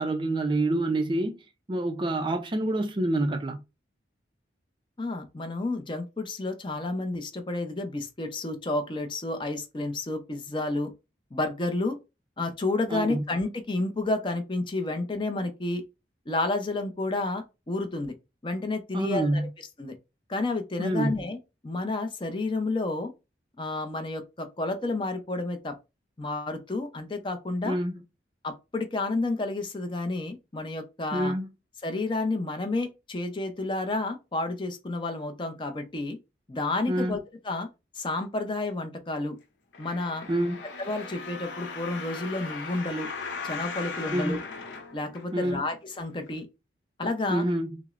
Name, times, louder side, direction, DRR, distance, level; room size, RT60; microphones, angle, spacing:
voice 1, 0.0-1.4 1.7-3.6 12.9-13.2 18.9-19.5 20.8-21.1 27.6-27.9 31.1-31.5 36.9-37.2 40.3-40.6 44.1-44.4 45.3-45.6 47.3-47.8, right 1 dB, 25° right, 0.4 m, -27 dB
voice 2, 5.0-10.9 11.3-12.0 12.4-15.8 16.3-18.1 18.4-19.5 19.8-19.9 20.3-21.4 21.6-23.1 23.6-25.7 26.2-27.8 28.4-31.3 31.8-36.2 36.5-37.2 37.4-37.7 37.9-39.4 39.8-40.3 40.8-43.1 43.4-44.4 44.9-46.5 47.0-47.4, left 2 dB, 25° left, 0.5 m, -30 dB
sound 1, 39.7-45.7 46.3-46.4, left 4 dB, 90° left, 0.7 m, -38 dB
5.9 x 2.0 x 2.4 m
head